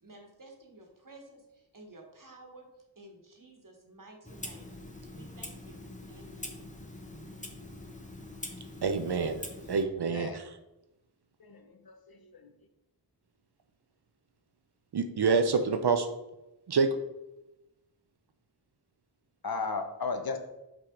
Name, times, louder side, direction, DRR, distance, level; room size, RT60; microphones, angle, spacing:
voice 1, 0.0-4.7 5.1-5.8 6.1-6.7, right 1 dB, 50° right, 2 dB, 1.4 m, -53 dB
Clock, 4.2-9.8, left 1 dB, 20° left, 0.8 m, -44 dB
voice 2, 8.8-9.4 9.7-10.6 14.9-16.1 16.7-16.9, right 5 dB, 65° right, 8 dB, 0.6 m, -27 dB
voice 3, 11.4-12.5 19.4-20.4, left 4 dB, 60° left, 7 dB, 0.8 m, -35 dB
5.7 x 4.9 x 3.8 m, 0.94 s
wide cardioid pair, 60°, 42 cm